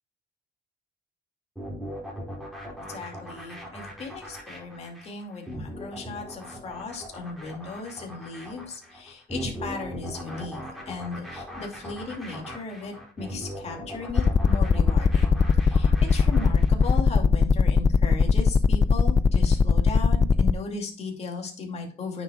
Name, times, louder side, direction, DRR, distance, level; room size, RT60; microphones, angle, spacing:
sound 1, 1.6-17.0, equal, ahead, 4.4 m, -39 dB
voice 1, 2.8-22.2, left 4 dB, 40° left, 1 dB, 2.6 m, -37 dB
sound 2, 14.1-20.5, left 5 dB, 20° left, 0.3 m, -18 dB
9.1 x 7.3 x 2.4 m, 0.39 s
cardioid pair, 110°, 17 cm